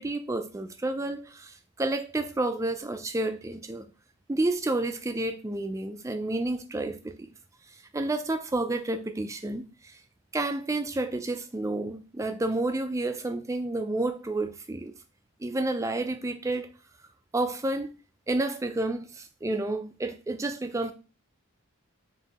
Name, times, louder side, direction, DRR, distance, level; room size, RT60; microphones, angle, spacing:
voice 1, 0.0-3.9 4.3-7.3 7.7-10.0 10.3-14.9 15.4-16.7 17.3-18.0 18.3-20.9, right 2 dB, 15° right, 0.3 m, -30 dB
5.2 x 2.7 x 2.9 m
head